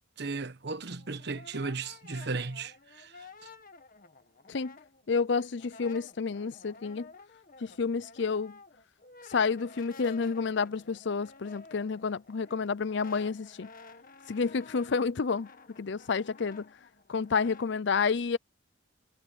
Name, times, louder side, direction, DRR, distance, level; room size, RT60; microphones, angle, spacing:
voice 1, 0.2-3.5, right 3 dB, 60° right, 1.2 m, -36 dB
Brass instrument, 0.8-5.2 5.5-17.7, left 4 dB, 50° left, 1.9 m, -52 dB
voice 2, 5.1-7.1 7.6-8.6 9.3-13.7 14.3-15.5 15.8-16.7 17.1-18.4, left 5 dB, 65° left, 0.6 m, -30 dB
head